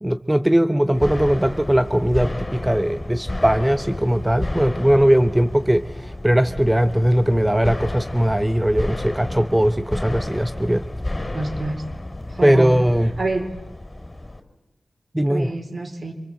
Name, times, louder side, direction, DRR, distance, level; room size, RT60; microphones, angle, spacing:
voice 1, 0.0-10.9 12.4-13.1 15.1-15.5, equal, 10° right, 10 dB, 0.9 m, -19 dB
sound 1, 0.9-14.4, left 1 dB, 20° left, 4.8 m, -31 dB
voice 2, 11.3-11.8 12.2-12.7 13.2-13.5 15.3-16.1, right 2 dB, 45° right, 5 dB, 4.2 m, -27 dB
26.5 x 25.0 x 7.8 m, 1.0 s
wide cardioid pair, 90°, 0 cm